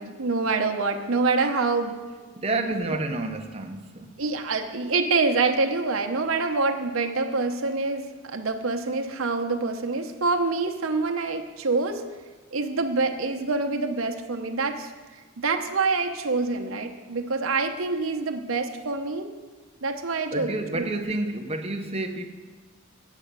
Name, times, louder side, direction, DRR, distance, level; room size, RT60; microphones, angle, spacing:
voice 1, 0.0-2.0 2.9-3.0 4.2-12.0 12.5-14.9 15.4-19.3 19.8-20.9, right 3 dB, 80° right, 5 dB, 0.9 m, -26 dB
voice 2, 2.3-4.1 20.3-22.3, right 2 dB, 30° right, 4 dB, 0.8 m, -29 dB
9.1 x 7.4 x 6.7 m, 1.3 s
head